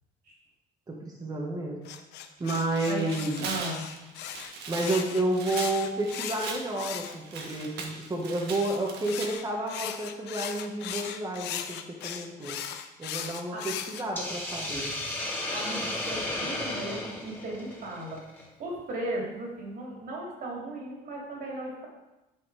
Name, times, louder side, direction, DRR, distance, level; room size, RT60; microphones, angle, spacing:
voice 1, 0.9-1.8 2.4-3.5 4.7-12.6 13.0-14.9, right 2 dB, 25° right, -1 dB, 1.4 m, -31 dB
sound 1, 1.9-7.7 8.5-14.0, left 9 dB, 85° left, 0.7 m, -38 dB
Tearing, 2.4-9.3, right 4 dB, 75° right, 1.5 m, -40 dB
voice 2, 3.4-3.8 13.5-13.6 15.5-18.2 18.6-21.9, right 1 dB, 60° right, -2 dB, 3.1 m, -36 dB
Hiss, 14.2-18.4, left 1 dB, 10° left, 2.2 m, -34 dB
9.2 x 5.6 x 4.8 m, 1.0 s
cardioid pair, 110°, 17 cm